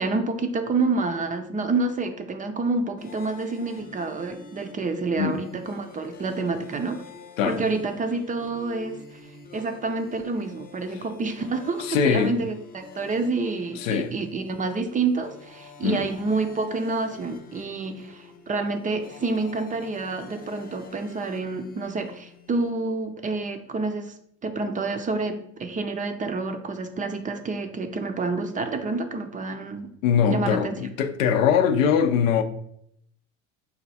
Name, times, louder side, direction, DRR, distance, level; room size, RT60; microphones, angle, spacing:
voice 1, 0.0-7.0 7.4-9.0 9.5-24.1 24.4-29.9 30.3-30.7, right 3 dB, 20° right, 0.4 m, -28 dB
sound 1, 3.0-22.7, left 4 dB, 25° left, 0.6 m, -47 dB
voice 2, 11.8-12.3 13.7-14.1 15.8-16.0 30.0-32.4, left 7 dB, 85° left, 0.5 m, -22 dB
4.3 x 2.3 x 4.0 m
hypercardioid pair, 85°, 38 cm